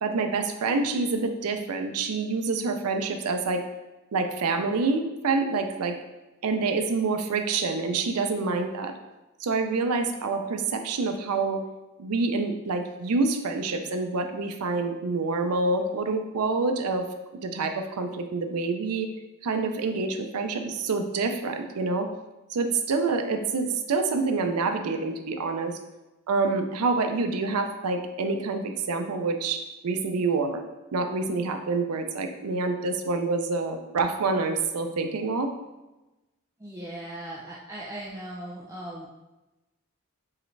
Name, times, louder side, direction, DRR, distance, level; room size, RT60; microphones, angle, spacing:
voice 1, 0.0-3.6 4.1-6.0 6.4-8.9 9.4-11.6 12.0-17.1 17.4-19.1 19.4-22.1 22.5-25.8 26.3-30.6 30.9-35.5, right 3 dB, 90° right, 6 dB, 0.5 m, -27 dB
voice 2, 36.6-39.1, right 1 dB, 15° right, -5 dB, 0.4 m, -38 dB
4.7 x 3.2 x 3.2 m, 1.0 s
head